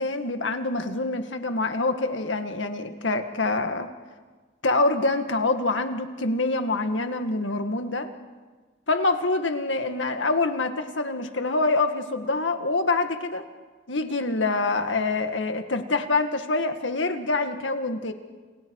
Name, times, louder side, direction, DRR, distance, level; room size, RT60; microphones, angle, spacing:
voice 1, 0.0-3.9 4.6-8.1 8.9-13.4 13.9-18.1, left 3 dB, 80° left, 6 dB, 2.0 m, -25 dB
29.0 x 29.0 x 4.9 m, 1.4 s
head